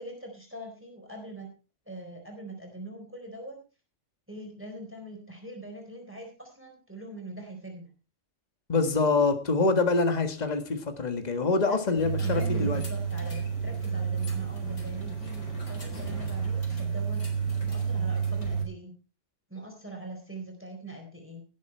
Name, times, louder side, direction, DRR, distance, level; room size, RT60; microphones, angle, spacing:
voice 1, 0.0-1.5 1.9-3.6 4.3-7.9 11.7-17.2 17.7-18.9 19.5-21.5, right 1 dB, 10° right, 2 dB, 4.1 m, -42 dB
voice 2, 8.7-12.8, left 3 dB, 35° left, 7 dB, 1.7 m, -25 dB
sound 1, 12.0-18.6, right 6 dB, 80° left, 4.3 m, -30 dB
18.0 x 8.4 x 4.4 m, 0.33 s
omnidirectional pair, 1.3 m